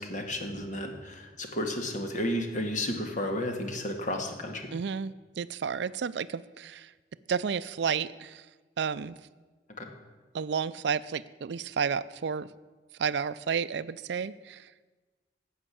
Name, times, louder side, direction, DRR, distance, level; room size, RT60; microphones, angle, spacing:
voice 1, 0.0-4.7 9.8-9.9, left 1 dB, 45° left, 4 dB, 1.8 m, -32 dB
voice 2, 4.7-6.9 7.3-8.4 8.8-9.2 10.3-12.5 13.0-14.6, right 6 dB, 65° right, 14 dB, 0.4 m, -31 dB
12.5 x 8.1 x 8.4 m, 1.3 s
head